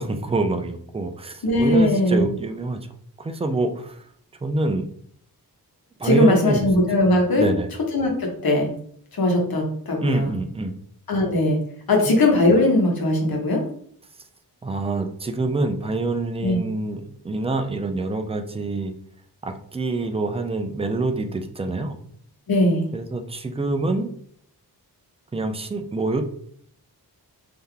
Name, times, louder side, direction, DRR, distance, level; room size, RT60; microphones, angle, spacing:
voice 1, 0.0-2.9 3.2-4.0 4.4-4.9 6.0-6.7 7.4-7.7 10.0-10.7 14.6-18.9 19.4-22.0 22.9-24.1 25.3-26.2, right 2 dB, 15° right, 6 dB, 0.3 m, -26 dB
voice 2, 1.4-2.3 6.0-7.5 7.9-8.7 9.1-10.3 11.1-11.6 11.9-13.6 16.4-16.6 22.5-22.8, left 1 dB, 65° left, 1 dB, 1.1 m, -19 dB
3.7 x 2.8 x 3.4 m, 0.62 s
wide cardioid pair, 140°, 39 cm